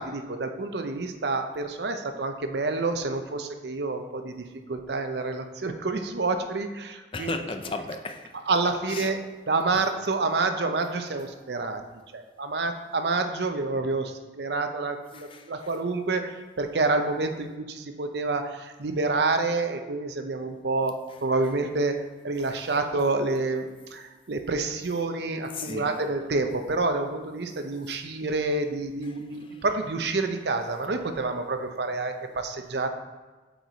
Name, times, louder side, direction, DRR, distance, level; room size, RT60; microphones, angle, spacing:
voice 1, 0.0-7.4 8.5-9.2 9.5-11.8 12.1-22.0 22.2-32.9, right 3 dB, 70° right, 0.6 m, -28 dB
voice 2, 7.1-8.4 8.9-9.1 15.1-15.5 22.4-22.5 25.6-26.0 29.5-29.6, left 3 dB, 30° left, 0.4 m, -35 dB
8.0 x 4.7 x 4.0 m
head